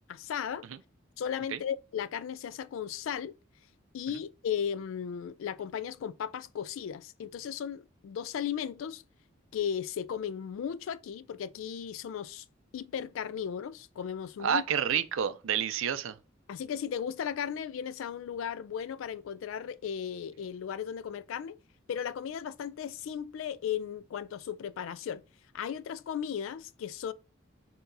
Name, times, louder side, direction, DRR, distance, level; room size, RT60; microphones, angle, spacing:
voice 1, 0.1-0.7 1.2-3.3 3.9-9.0 9.5-12.4 12.7-14.6 16.5-21.6 21.9-25.2 25.5-27.1, left 8 dB, 80° left, 0.3 m, -36 dB
voice 2, 14.4-16.2, right 8 dB, 80° right, 0.4 m, -29 dB
5.8 x 2.8 x 2.6 m
head